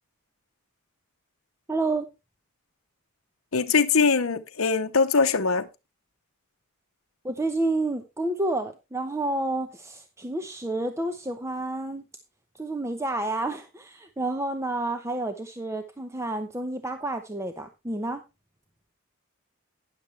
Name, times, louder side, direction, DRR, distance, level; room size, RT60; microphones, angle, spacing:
voice 1, 1.7-2.1 7.2-12.0 12.6-18.2, right 2 dB, 15° right, 0.8 m, -29 dB
voice 2, 3.5-5.7, left 5 dB, 70° left, 0.8 m, -22 dB
12.5 x 9.9 x 3.2 m
head